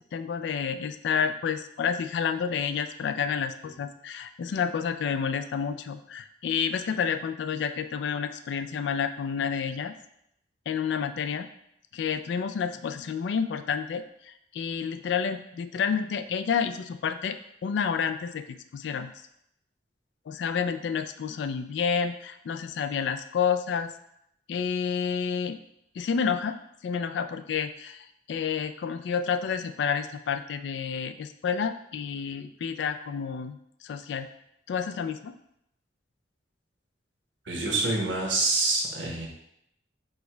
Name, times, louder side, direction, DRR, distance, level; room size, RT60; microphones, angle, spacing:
voice 1, 0.1-9.9 10.7-11.5 11.9-19.1 20.3-23.9 24.5-25.6 26.0-26.6 26.8-34.3 34.7-35.3, left 6 dB, 75° left, 10 dB, 0.3 m, -29 dB
voice 2, 37.4-39.3, right 3 dB, 90° right, -1 dB, 1.1 m, -26 dB
4.4 x 2.2 x 4.4 m, 0.77 s
head